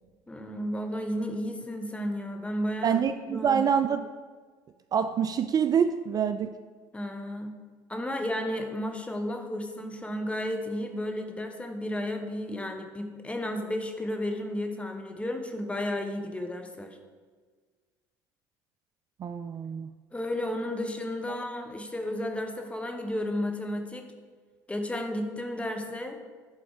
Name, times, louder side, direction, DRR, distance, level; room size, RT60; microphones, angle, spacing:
voice 1, 0.3-3.0 3.3-3.6 6.9-7.5 7.9-17.0 20.1-24.1 24.7-26.2, left 1 dB, 10° left, 5 dB, 1.2 m, -33 dB
voice 2, 2.8-4.1 4.9-6.5 19.2-19.9 21.3-21.4, right 7 dB, 40° right, 10 dB, 0.4 m, -26 dB
11.0 x 4.0 x 4.9 m, 1.5 s
hypercardioid pair, 70°, 10 cm